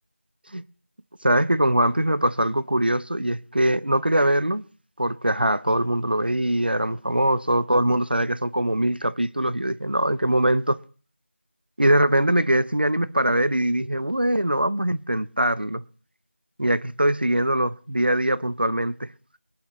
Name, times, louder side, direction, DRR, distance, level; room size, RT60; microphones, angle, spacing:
voice 1, 1.2-4.6 5.0-10.8 11.8-15.8 16.6-19.1, right 1 dB, 45° right, 0.6 m, -22 dB
22.5 x 11.5 x 3.0 m
figure-of-eight pair, 175°, 7 cm